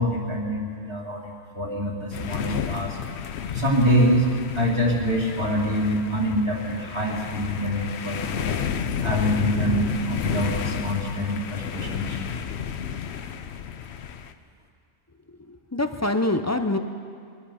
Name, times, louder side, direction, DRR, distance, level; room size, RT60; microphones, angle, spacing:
voice 1, 0.0-3.0 3.5-4.3 4.5-8.6 9.0-12.2, equal, 25° right, -3 dB, 2.4 m, -25 dB
sound 1, 2.1-14.3, left 8 dB, 75° left, 0.9 m, -31 dB
voice 2, 15.4-16.8, left 2 dB, 20° left, 7 dB, 0.5 m, -25 dB
22.5 x 9.8 x 5.7 m, 2.3 s
omnidirectional pair, 1.1 m